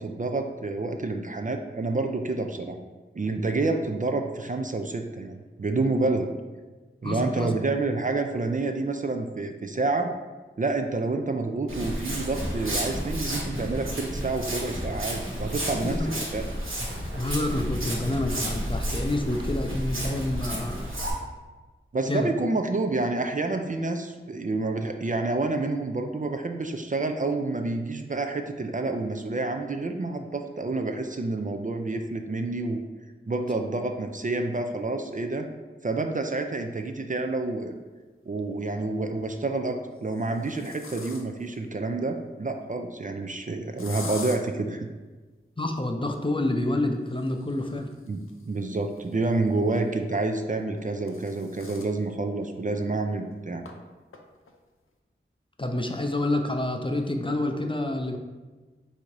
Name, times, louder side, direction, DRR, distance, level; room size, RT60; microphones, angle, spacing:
voice 1, 0.0-2.8 3.2-6.3 7.0-10.1 10.6-16.0 16.3-16.4 21.9-32.8 33.3-35.5 35.8-37.7 38.3-44.9 48.1-48.2 48.4-53.6, right 3 dB, 40° right, 5 dB, 0.4 m, -28 dB
voice 2, 7.0-7.5 15.8-16.1 17.1-20.9 22.1-22.3 45.6-47.9 55.6-58.2, left 1 dB, 25° left, 4 dB, 0.5 m, -28 dB
Walk footsteps, 11.7-21.1, equal, 75° right, 1.2 m, -31 dB
sound 1, 37.4-37.5 38.9-39.4 40.0-41.5 43.8-44.4 47.0-49.6 50.6-52.0 52.4-52.5 52.9-53.0 53.6-53.7 54.1-54.5, left 4 dB, 80° left, 0.5 m, -44 dB
3.7 x 2.7 x 4.6 m, 1.3 s
wide cardioid pair, 45°, 21 cm